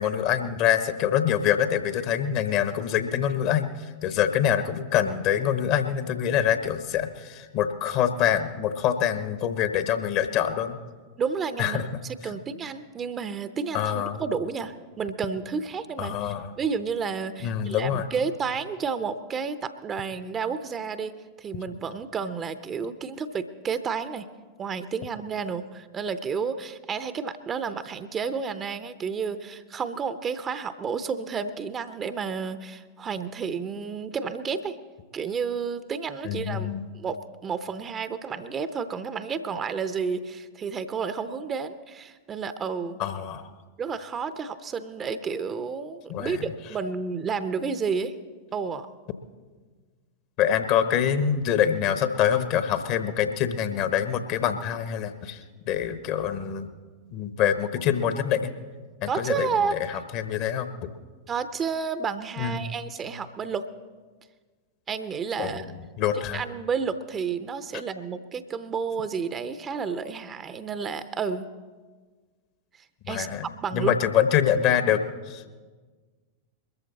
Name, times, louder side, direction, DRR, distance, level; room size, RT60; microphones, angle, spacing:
voice 1, 0.0-3.7 4.0-10.8 11.6-12.4 13.7-14.2 16.0-16.5 17.4-18.1 36.2-36.8 43.0-43.5 46.1-46.5 50.4-55.4 55.7-56.7 57.1-58.5 59.0-59.5 59.7-60.9 62.4-62.7 65.4-65.6 66.0-66.4 73.1-75.5, left 9 dB, 45° left, 10 dB, 1.1 m, -25 dB
voice 2, 11.2-16.2 16.6-24.3 24.6-34.8 35.1-36.7 36.9-43.0 43.8-48.1 48.5-48.9 59.1-59.7 61.3-63.7 64.9-65.7 66.3-71.5 73.1-73.3 73.6-73.9, right 5 dB, 25° right, 12 dB, 0.7 m, -31 dB
22.0 x 14.0 x 4.1 m, 1.4 s
figure-of-eight pair, 90°, 0 cm